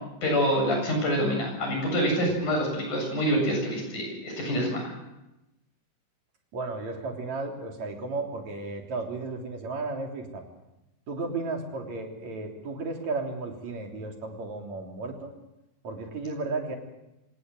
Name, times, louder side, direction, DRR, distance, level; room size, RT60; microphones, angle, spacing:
voice 1, 0.2-4.9, equal, 65° left, 1 dB, 9.4 m, -26 dB
voice 2, 6.5-10.4 11.1-15.3 15.8-16.8, right 3 dB, 55° right, 2 dB, 4.5 m, -34 dB
26.0 x 18.5 x 7.9 m, 0.94 s
omnidirectional pair, 3.9 m